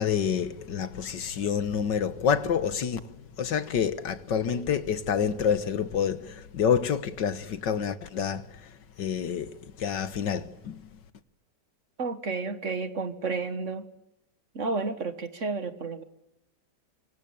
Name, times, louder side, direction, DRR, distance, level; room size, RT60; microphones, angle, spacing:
voice 1, 0.0-10.8, left 7 dB, 85° left, 2.0 m, -28 dB
voice 2, 12.0-13.9 14.6-16.0, right 4 dB, 45° right, 1.8 m, -31 dB
25.5 x 24.5 x 8.8 m
omnidirectional pair, 1.9 m